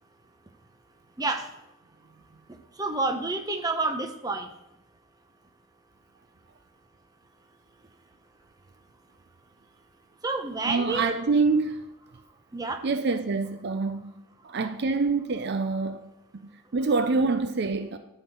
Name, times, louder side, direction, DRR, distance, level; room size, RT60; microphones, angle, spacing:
voice 1, 2.8-4.5 10.2-11.1 12.5-12.8, right 3 dB, 20° right, 0.8 m, -29 dB
voice 2, 10.6-11.9 12.8-14.1 14.4-16.1 16.4-18.0, right 4 dB, 50° right, 0.5 m, -26 dB
11.0 x 4.5 x 8.2 m
head